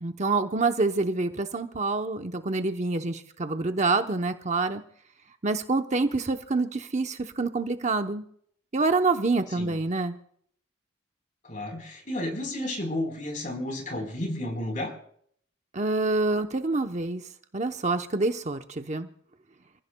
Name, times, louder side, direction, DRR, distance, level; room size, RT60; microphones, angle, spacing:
voice 1, 0.0-4.8 5.4-8.2 8.7-10.1 15.7-17.2 17.5-19.1, right 3 dB, 35° right, 6 dB, 0.8 m, -26 dB
voice 2, 11.4-14.9, left 1 dB, 40° left, 4 dB, 4.1 m, -32 dB
29.0 x 15.5 x 2.2 m, 0.64 s
head